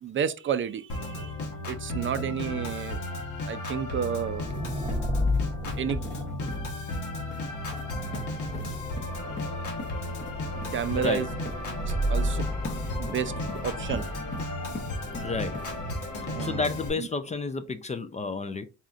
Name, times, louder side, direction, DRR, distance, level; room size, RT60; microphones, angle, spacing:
voice 1, 0.0-1.3 1.7-3.0 3.5-4.5 5.8-6.0 8.5-8.8 10.7-11.3 11.9-12.4 13.0-13.3 13.6-14.1 16.3-16.6, right 8 dB, 40° right, 0.4 m, -31 dB
Organ, 0.9-16.9, left 1 dB, 75° left, 1.3 m, -34 dB
sound 1, 4.1-16.6, left 1 dB, 15° right, 0.8 m, -34 dB
sound 2, 4.5-4.6 4.9-5.8 6.0-6.2 6.5-6.6 6.9-7.0 7.3-7.4 7.7-7.9 8.1-8.3 8.5-8.7 9.0-9.5 9.8-9.9 10.2-10.3 10.6-10.7 11.0-11.2 11.4-11.6 12.6-12.8 13.1-13.6 13.9-14.4 14.7-15.3 15.5-15.7, left 3 dB, 40° left, 0.8 m, -40 dB
voice 2, 10.9-11.3 14.8-15.6 16.4-18.7, left 4 dB, 25° left, 0.4 m, -31 dB
4.2 x 3.6 x 2.5 m
cardioid pair, 90°, 30 cm